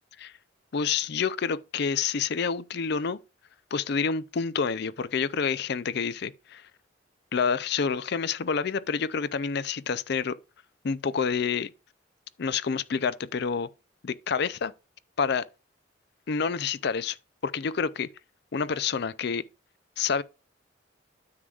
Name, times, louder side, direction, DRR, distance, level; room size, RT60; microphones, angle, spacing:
voice 1, 0.7-3.2 3.7-6.6 7.3-10.4 10.8-11.7 12.4-13.7 14.0-14.7 15.2-15.4 16.3-17.2 17.4-18.1 18.5-19.4 20.0-20.2, left 6 dB, 55° left, 0.4 m, -28 dB
9.7 x 7.7 x 2.4 m
head